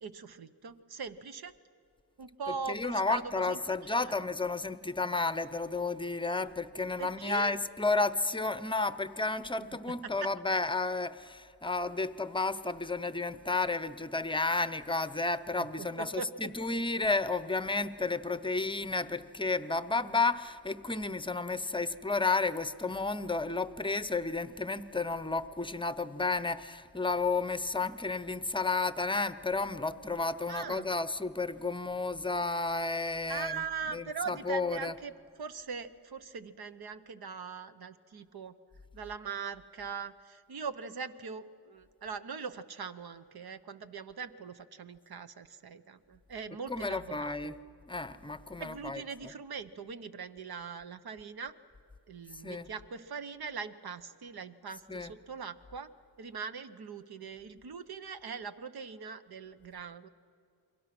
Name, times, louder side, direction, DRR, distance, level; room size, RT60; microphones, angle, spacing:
voice 1, 0.0-1.5 2.2-4.1 7.0-7.5 9.6-10.0 15.8-16.3 30.5-30.9 33.3-35.1 35.4-38.5 38.9-47.5 48.6-51.5 52.1-55.9 56.2-60.1, right 6 dB, 65° right, 11 dB, 1.1 m, -41 dB
voice 2, 2.7-33.6 33.9-34.9 46.7-47.6 47.9-49.0 52.4-52.6 54.9-55.1, left 3 dB, 10° left, 14 dB, 0.7 m, -32 dB
29.5 x 22.5 x 6.1 m, 2.5 s
wide cardioid pair, 100°, 41 cm